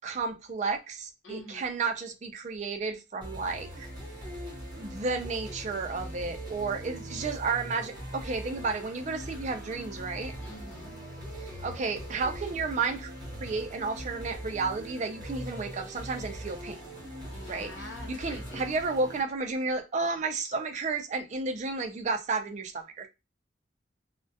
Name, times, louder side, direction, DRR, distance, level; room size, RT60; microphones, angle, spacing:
voice 1, 0.0-3.9 4.8-10.3 11.4-13.1 13.4-16.8 17.5-23.1, right 4 dB, 40° right, 0.4 m, -32 dB
voice 2, 1.2-1.7 10.4-11.0 17.3-18.7, left 2 dB, 85° left, 0.7 m, -46 dB
sound 1, 3.2-19.2, equal, 20° right, 0.9 m, -41 dB
2.2 x 2.1 x 2.6 m
head